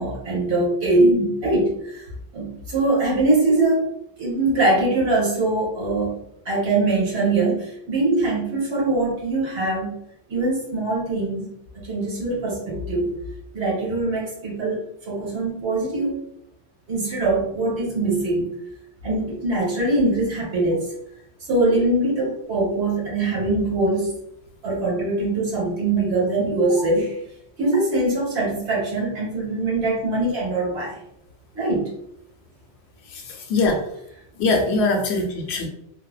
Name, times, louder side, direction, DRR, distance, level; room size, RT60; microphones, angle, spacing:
voice 1, 0.0-2.0 2.3-3.9 4.2-6.2 6.4-10.0 10.3-11.6 11.8-13.1 13.5-16.1 16.9-18.5 19.0-20.9 21.5-24.2 24.6-27.1 27.6-31.0 31.5-31.9, right 2 dB, 80° right, -4 dB, 1.4 m, -22 dB
voice 2, 33.1-33.8 34.4-35.7, left 3 dB, 80° left, 1 dB, 0.9 m, -22 dB
2.7 x 2.0 x 2.3 m, 0.74 s
omnidirectional pair, 1.1 m